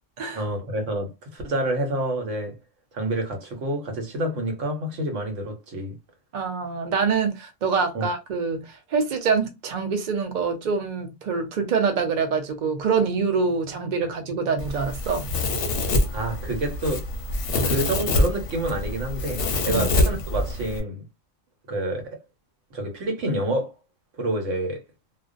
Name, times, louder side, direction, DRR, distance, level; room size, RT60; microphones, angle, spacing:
voice 1, 0.3-2.5 2.9-5.9 7.9-8.1 14.0-14.1 16.1-17.1 17.6-21.0 21.7-22.2 22.7-23.7 24.2-24.8, right 1 dB, 75° right, 1.1 m, -28 dB
voice 2, 6.3-15.3 19.7-19.9, right 5 dB, 50° right, 0.6 m, -25 dB
Domestic sounds home sounds, 14.6-20.8, left 2 dB, 60° left, 0.7 m, -25 dB
2.4 x 2.1 x 2.4 m
omnidirectional pair, 1.3 m